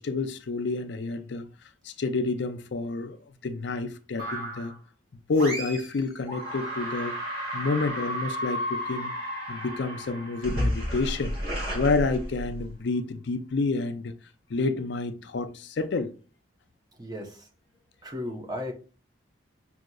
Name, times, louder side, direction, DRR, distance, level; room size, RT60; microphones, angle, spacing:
voice 1, 0.0-1.5 1.8-3.2 3.4-4.7 5.1-7.2 7.5-9.1 9.5-11.4 11.7-14.1 14.5-16.1, left 3 dB, 60° left, 0.4 m, -29 dB
sound 1, 4.2-4.8 5.3-6.0 6.3-12.7, equal, 50° right, 1.9 m, -32 dB
voice 2, 17.0-17.5 18.0-18.7, left 1 dB, 20° right, 0.8 m, -35 dB
6.2 x 2.8 x 2.3 m
head